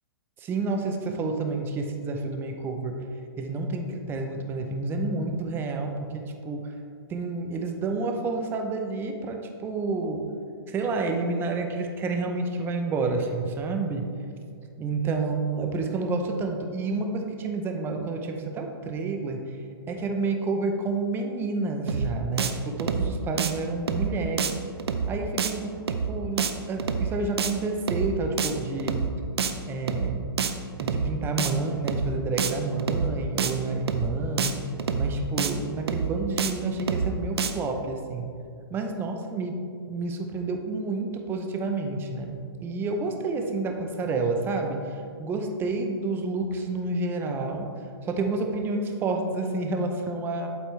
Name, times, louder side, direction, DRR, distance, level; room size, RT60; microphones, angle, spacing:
voice 1, 0.4-3.0 3.4-6.7 7.1-10.3 10.7-14.1 14.8-19.6 19.9-24.6 25.1-25.7 26.1-29.1 29.7-30.3 30.8-34.6 35.0-38.3 38.7-39.5 39.9-47.6 48.0-50.5, right 3 dB, 15° right, 4 dB, 0.7 m, -29 dB
sound 1, 21.9-22.1 22.4-22.5 22.8-23.1 23.4-23.5 23.9-24.1 24.4-24.5 24.8-25.1 25.4-25.5 25.9-26.1 26.4-26.5 26.8-27.1 27.4-27.5 27.9-28.1 28.4-28.5 28.8-29.1 29.4-29.5 29.9-30.1 30.4-30.5 30.8-31.1 31.4-31.5 31.9-32.1 32.4-32.5 32.8-33.1 33.4-33.5 33.9-34.1 34.4-34.5 34.8-35.1 35.4-35.5 35.9-36.1 36.4-36.5 36.8-37.1 37.4-37.5, right 6 dB, 75° right, 0.6 m, -26 dB
8.1 x 7.8 x 3.2 m, 2.3 s
hypercardioid pair, 140°, 13 cm